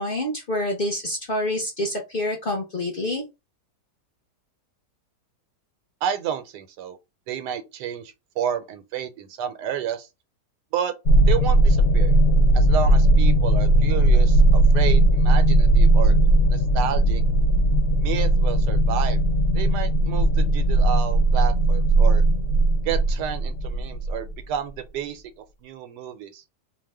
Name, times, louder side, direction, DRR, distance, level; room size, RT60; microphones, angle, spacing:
voice 1, 0.0-3.2, left 1 dB, 45° left, 0.7 m, -27 dB
voice 2, 6.0-7.0 7.3-10.1 10.7-10.9 11.3-12.1 12.5-16.1 16.5-17.2 18.0-19.2 19.5-22.2 22.8-25.2 25.6-26.4, right 8 dB, 85° right, 1.2 m, -30 dB
sound 1, 11.1-24.4, right 1 dB, 70° left, 0.9 m, -18 dB
2.7 x 2.1 x 3.3 m
omnidirectional pair, 1.8 m